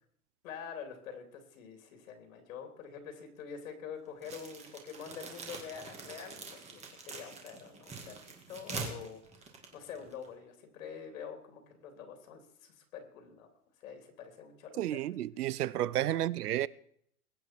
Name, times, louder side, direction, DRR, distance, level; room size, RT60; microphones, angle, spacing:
voice 1, 0.4-13.5 13.8-15.0 16.1-16.3, left 7 dB, 60° left, 3.3 m, -46 dB
sound 1, 4.2-10.3, right 4 dB, 15° right, 2.1 m, -44 dB
voice 2, 14.8-16.7, right 13 dB, 80° right, 0.7 m, -31 dB
21.5 x 8.5 x 4.6 m
hypercardioid pair, 145°, 46 cm